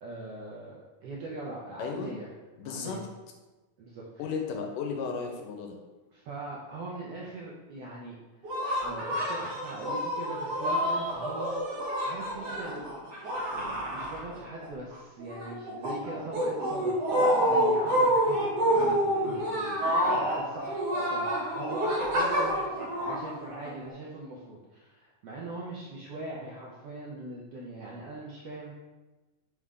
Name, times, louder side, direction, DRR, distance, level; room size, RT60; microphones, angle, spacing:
voice 1, 0.0-2.3 2.6-3.0 3.8-4.2 6.1-8.1 8.8-12.9 13.3-17.0 17.4-18.1 18.6-28.7, right 2 dB, 80° right, -4 dB, 1.4 m, -41 dB
voice 2, 1.8-2.1 2.6-3.0 4.2-5.8, left 5 dB, 85° left, 2 dB, 2.3 m, -34 dB
sound 1, 8.4-14.7 14.9-23.9, equal, 60° right, 1.1 m, -28 dB
5.4 x 3.7 x 4.8 m, 1.2 s
omnidirectional pair, 3.7 m